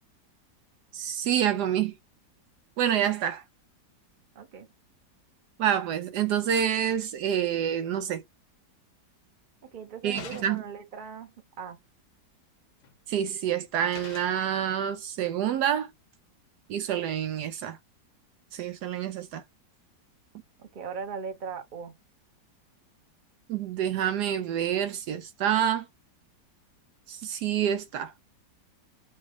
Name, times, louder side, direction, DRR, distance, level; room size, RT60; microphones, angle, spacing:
voice 1, 0.9-1.9 2.8-3.4 5.6-8.2 10.0-10.6 13.1-15.9 16.7-17.8 18.5-19.4 23.5-25.9 27.1-28.1, right 9 dB, 75° right, 1.1 m, -27 dB
voice 2, 4.3-4.7 9.6-11.3 11.6-11.8 20.6-21.9, right 6 dB, 35° right, 0.9 m, -39 dB
sound 1, 10.1-10.8 12.8-13.2 13.9-14.5, left 6 dB, 70° left, 1.3 m, -44 dB
4.2 x 2.3 x 4.7 m
omnidirectional pair, 1.9 m